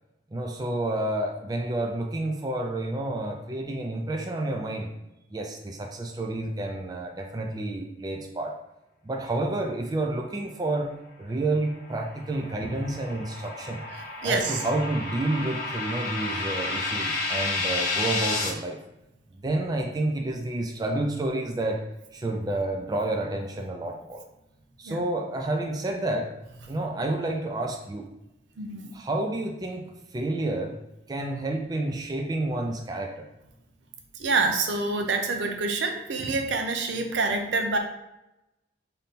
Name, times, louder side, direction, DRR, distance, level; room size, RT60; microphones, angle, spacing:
voice 1, 0.3-4.9 5.3-8.6 9.0-10.9 11.2-13.8 14.2-18.8 19.3-21.8 22.1-24.2 24.8-26.3 26.7-28.1 28.9-29.9 30.1-30.8 31.1-33.3 36.2-36.4, right 2 dB, 20° right, 2 dB, 0.3 m, -29 dB
sound 1, 11.7-18.5, left 3 dB, 55° left, 0.9 m, -31 dB
voice 2, 14.2-14.6 24.9-25.0 28.6-28.9 34.2-37.8, right 3 dB, 80° right, 4 dB, 0.6 m, -26 dB
3.5 x 2.7 x 4.0 m, 0.91 s
head